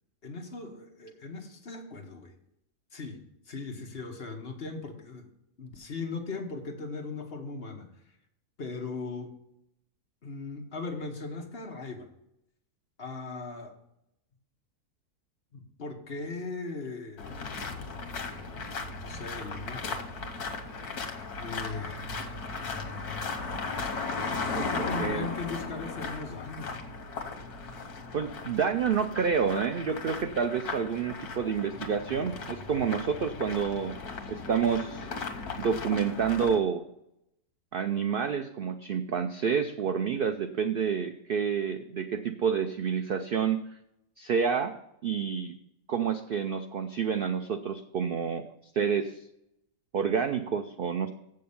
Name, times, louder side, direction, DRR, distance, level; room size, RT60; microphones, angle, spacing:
voice 1, 0.2-2.3 2.9-5.3 5.6-7.9 8.6-9.3 10.2-12.1 13.0-13.8 15.5-17.8 18.3-18.5 19.0-20.0 21.4-22.1 24.5-26.8, left 3 dB, 45° left, 3 dB, 1.3 m, -39 dB
sound 1, 17.2-36.6, left 4 dB, 85° left, 1.7 m, -37 dB
voice 2, 24.5-25.3 28.1-34.0 34.3-35.1 35.6-36.8 37.7-43.6 44.2-44.7 45.0-45.5 45.9-48.5 48.7-49.2 49.9-51.1, right 7 dB, 75° right, 8 dB, 0.5 m, -29 dB
7.8 x 6.5 x 7.0 m, 0.81 s
omnidirectional pair, 1.6 m